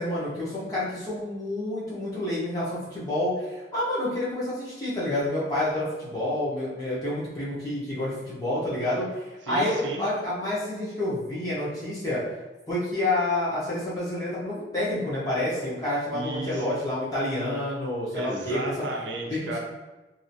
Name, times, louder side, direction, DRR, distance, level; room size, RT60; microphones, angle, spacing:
voice 1, 0.0-12.2 12.7-18.6 19.3-19.4, left 1 dB, 20° left, -9 dB, 0.9 m, -28 dB
voice 2, 9.4-10.0 16.1-16.7 18.1-19.6, right 2 dB, 90° right, 0 dB, 0.6 m, -33 dB
2.8 x 2.7 x 2.7 m, 1.1 s
head